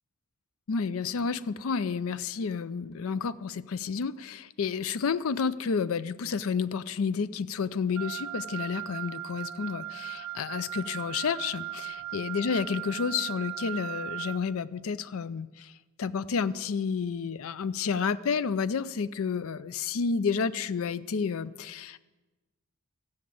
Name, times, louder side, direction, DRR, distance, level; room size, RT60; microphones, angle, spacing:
voice 1, 0.7-11.6 12.1-15.7 16.0-22.0, left 5 dB, 65° left, 15 dB, 0.4 m, -30 dB
Wind instrument woodwind instrument, 8.0-14.4, right 12 dB, 70° right, 0.4 m, -38 dB
14.0 x 6.4 x 8.5 m, 1.2 s
head